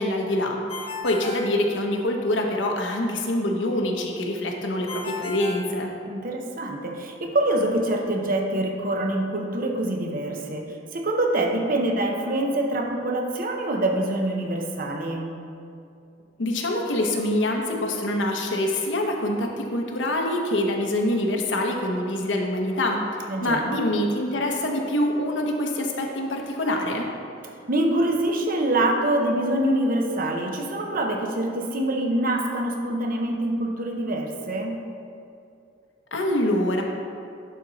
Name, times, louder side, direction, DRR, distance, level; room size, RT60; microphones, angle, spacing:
voice 1, 0.0-5.9 16.4-27.1 36.1-36.8, left 1 dB, 80° left, 2 dB, 0.9 m, -25 dB
Ringtone, 0.7-2.3 4.9-6.5, left 3 dB, 30° left, 0.7 m, -36 dB
voice 2, 6.1-15.4 23.3-23.8 27.7-34.8, right 1 dB, 50° right, 2 dB, 0.8 m, -25 dB
11.0 x 4.3 x 4.0 m, 2.5 s
head